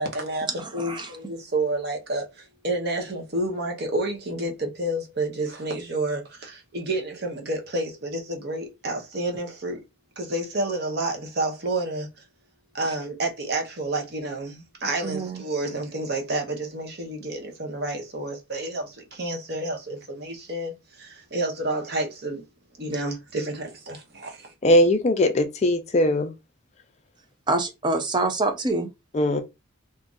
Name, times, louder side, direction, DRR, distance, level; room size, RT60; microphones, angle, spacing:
voice 1, 0.0-9.8 10.2-12.1 12.7-22.4 22.8-24.5, right 2 dB, 50° right, 0.8 m, -30 dB
voice 2, 0.6-1.1 15.0-15.4 27.5-28.9, right 2 dB, 20° right, 0.5 m, -26 dB
voice 3, 24.6-26.3 29.1-29.4, left 1 dB, 30° left, 0.4 m, -20 dB
2.6 x 2.4 x 3.8 m
head